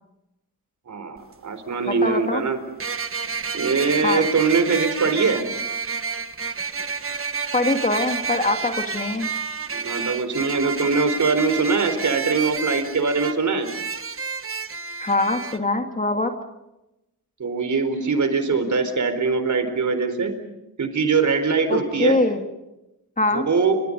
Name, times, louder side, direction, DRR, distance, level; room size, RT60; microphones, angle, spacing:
voice 1, 0.9-2.6 3.5-5.4 9.7-13.7 17.4-20.4 20.8-22.2 23.3-23.8, right 4 dB, 50° right, 9 dB, 4.2 m, -22 dB
sound 1, 1.2-1.3 2.8-15.6, right 5 dB, 35° right, 1.4 m, -30 dB
voice 2, 1.9-2.4 4.0-4.3 7.5-9.3 15.0-16.3 21.7-22.4 23.2-23.5, left 2 dB, 20° left, 5 dB, 2.2 m, -23 dB
29.5 x 26.0 x 5.4 m, 0.93 s
wide cardioid pair, 115°, 37 cm